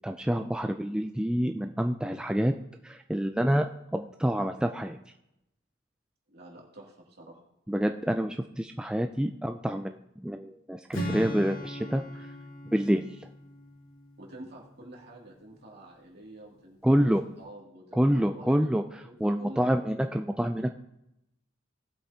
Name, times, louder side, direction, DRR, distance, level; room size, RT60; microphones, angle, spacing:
voice 1, 0.0-2.5 2.8-5.0 7.7-10.0 10.2-12.0 12.7-13.0 16.8-17.2 17.9-20.7, equal, 5° right, 6 dB, 0.3 m, -27 dB
voice 2, 6.3-7.4 12.2-12.3 14.2-18.5 19.0-19.8, right 1 dB, 55° right, -2 dB, 2.5 m, -48 dB
Strum, 10.9-15.0, equal, 90° left, 4.6 m, -39 dB
17.5 x 7.8 x 2.8 m, 0.84 s
head